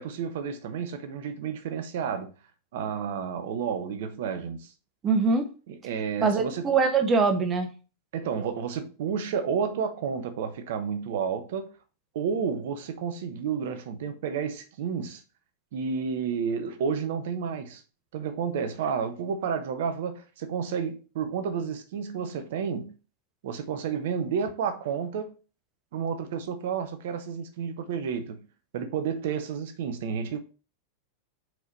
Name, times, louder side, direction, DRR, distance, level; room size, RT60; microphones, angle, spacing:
voice 1, 0.0-2.3 2.7-4.7 5.7-6.7 8.1-11.7 12.1-15.2 15.7-17.8 18.1-22.9 23.4-25.3 25.9-28.5 28.7-30.4, right 6 dB, 55° right, 1.0 m, -31 dB
voice 2, 5.0-5.5 6.2-7.7, right 4 dB, 25° right, 1.1 m, -23 dB
4.7 x 4.5 x 5.3 m
figure-of-eight pair, 90°, 0 cm